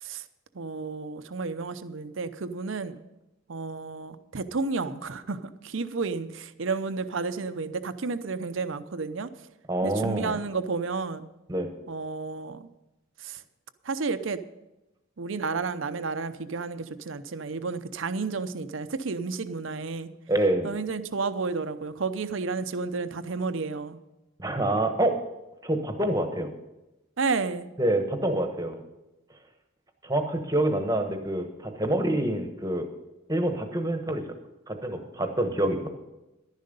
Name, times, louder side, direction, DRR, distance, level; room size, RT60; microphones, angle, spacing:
voice 1, 0.5-3.0 3.5-9.3 9.8-11.3 11.9-12.7 13.2-13.4 13.8-14.4 15.2-20.1 20.6-24.0 27.2-27.7, right 4 dB, 65° right, 12 dB, 0.7 m, -31 dB
voice 2, 9.7-10.4 11.5-11.7 20.3-20.7 24.4-25.2 25.6-26.5 27.8-28.8 30.0-32.9 33.3-34.2 34.7-35.9, right 1 dB, 15° right, 6 dB, 1.1 m, -26 dB
11.5 x 10.5 x 5.3 m, 0.98 s
head